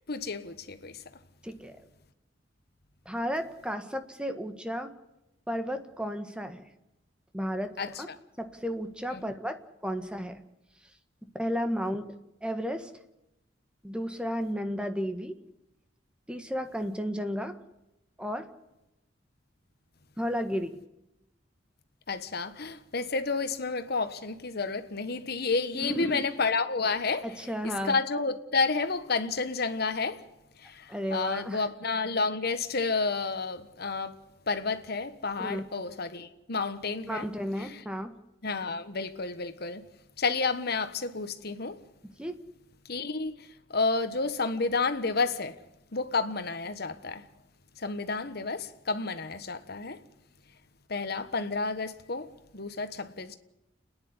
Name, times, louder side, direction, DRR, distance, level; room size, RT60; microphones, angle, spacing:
voice 1, 0.1-1.0 7.8-8.2 9.1-9.3 22.1-27.3 27.6-30.2 30.6-34.2 34.5-37.3 37.6-37.8 38.4-39.8 40.2-41.8 42.9-43.3 43.7-45.6 45.9-47.2 47.8-50.0 50.9-53.4, left 4 dB, 55° left, 1.4 m, -30 dB
voice 2, 1.4-1.8 3.0-4.9 5.5-6.6 7.3-8.1 8.4-10.4 11.2-12.1 12.4-12.9 13.8-15.4 16.3-17.6 18.2-18.5 20.2-20.8 25.7-26.2 27.2-27.9 30.9-31.6 35.4-35.6 37.1-38.2 42.2-42.3, equal, 5° right, 1.6 m, -33 dB
30.0 x 10.5 x 9.8 m
head